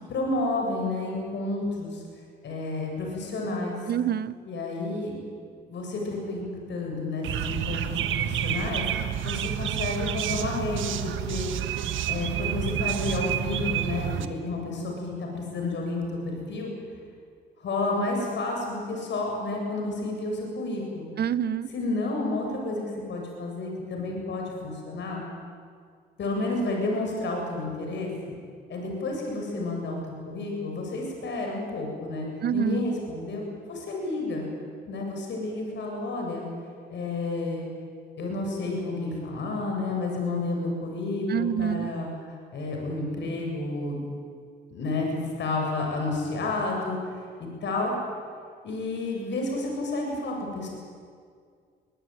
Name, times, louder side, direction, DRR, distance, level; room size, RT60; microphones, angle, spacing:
voice 1, 0.1-2.0 2.4-3.8 4.5-5.2 5.7-8.9 9.2-11.5 12.1-16.7 17.6-21.1 21.7-25.2 26.2-28.1 28.7-30.0 30.3-34.5 34.9-36.5 36.9-37.7 38.2-44.0 44.7-47.0 47.4-47.9 48.6-50.7, left 2 dB, 65° left, 0 dB, 8.0 m, -30 dB
voice 2, 3.9-4.3 21.2-21.7 32.4-32.8 41.3-41.9, right 9 dB, 55° right, 17 dB, 0.9 m, -26 dB
sound 1, 7.2-14.3, right 10 dB, 80° right, 1.4 m, -29 dB
23.0 x 20.5 x 9.5 m, 2.1 s
cardioid pair, 90°, 20 cm